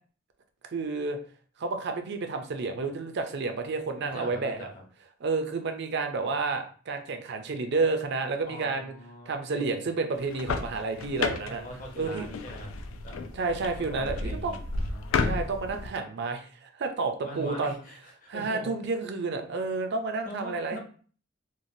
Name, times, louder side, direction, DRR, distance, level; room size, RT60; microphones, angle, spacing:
voice 1, 0.6-1.2 1.6-4.7 5.2-8.9 9.3-11.6 12.0-12.3 13.3-14.6 15.2-17.8 18.3-20.8, right 3 dB, 60° right, 6 dB, 0.5 m, -30 dB
voice 2, 4.0-4.8 8.4-9.7 11.4-12.7 13.0-13.2 13.4-15.2 17.2-18.7 20.2-20.8, equal, 40° left, 0 dB, 0.8 m, -42 dB
sound 1, 10.2-15.9, left 4 dB, 80° left, 0.4 m, -33 dB
3.1 x 2.3 x 2.6 m, 0.43 s
head